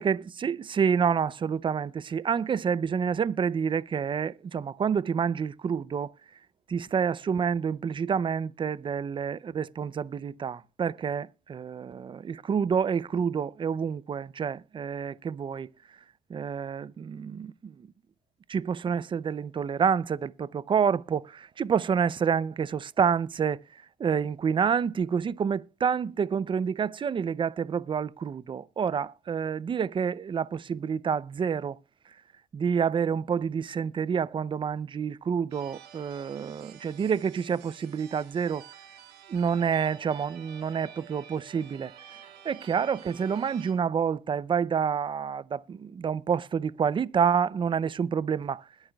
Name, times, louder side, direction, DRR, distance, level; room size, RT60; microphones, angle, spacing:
voice 1, 0.0-6.1 6.7-15.7 16.3-17.9 18.5-31.8 32.5-38.6 39.3-48.7, right 7 dB, 30° right, 0.5 m, -28 dB
sound 1, 35.5-43.7, right 9 dB, 75° right, 2.1 m, -50 dB
20.5 x 9.0 x 2.3 m
cardioid pair, 110°, 17 cm